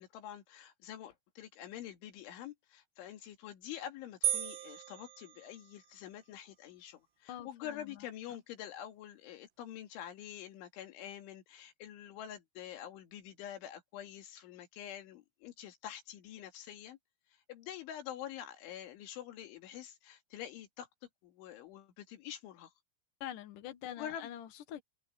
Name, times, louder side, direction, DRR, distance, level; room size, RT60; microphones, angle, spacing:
voice 1, 0.0-17.0 17.3-20.9 21.2-22.7 23.9-24.3, left 10 dB, 85° left, 4.7 m, -46 dB
sound 1, 4.2-6.0, right 11 dB, 65° right, 4.2 m, -36 dB
voice 2, 7.3-8.1 23.2-24.8, left 11 dB, 65° left, 2.2 m, -45 dB
omnidirectional pair, 5.3 m